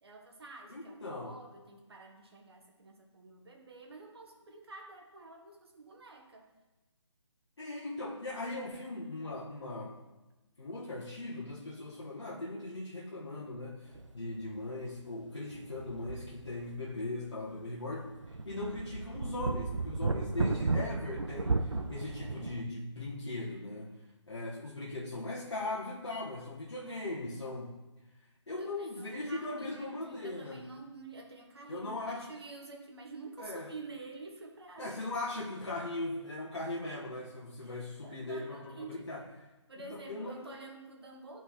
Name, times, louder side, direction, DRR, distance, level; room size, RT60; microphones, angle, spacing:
voice 1, 0.0-6.5 26.8-27.7 28.6-35.0 37.6-39.1 39.7-41.4, right 3 dB, 55° right, 2 dB, 1.3 m, -49 dB
voice 2, 0.7-1.4 7.6-10.0 10.6-23.9 24.3-27.7 28.5-30.6 31.7-32.3 33.4-33.7 34.8-39.2 39.9-40.5, left 2 dB, 65° left, -6 dB, 1.2 m, -39 dB
sound 1, 13.9-14.1 14.5-14.6 15.5-16.9 17.3-17.4 17.9-22.6, right 3 dB, 80° right, 0.6 m, -34 dB
11.0 x 4.5 x 2.9 m, 1.1 s
figure-of-eight pair, 150°, 16 cm